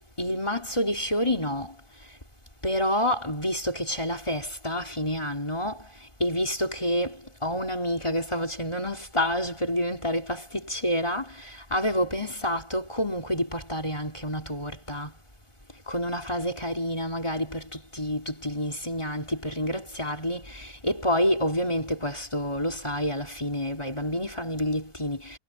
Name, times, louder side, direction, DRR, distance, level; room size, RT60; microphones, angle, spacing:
voice 1, 0.2-1.7 2.6-5.9 6.2-15.1 15.9-25.4, equal, 10° left, 3.5 m, -28 dB
omnidirectional pair, 4.0 m